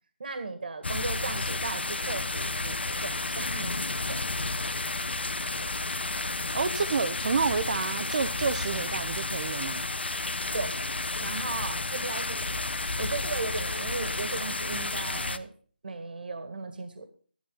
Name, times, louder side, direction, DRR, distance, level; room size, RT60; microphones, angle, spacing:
voice 1, 0.2-4.2 10.5-10.7 11.2-12.6 13.0-15.5 15.8-17.1, right 3 dB, 60° right, 9 dB, 2.0 m, -36 dB
sound 1, 0.8-15.4, left 2 dB, 90° left, 1.1 m, -32 dB
voice 2, 6.5-9.8, right 5 dB, 45° right, 12 dB, 0.8 m, -29 dB
12.5 x 11.5 x 3.9 m, 0.43 s
figure-of-eight pair, 165°, 6 cm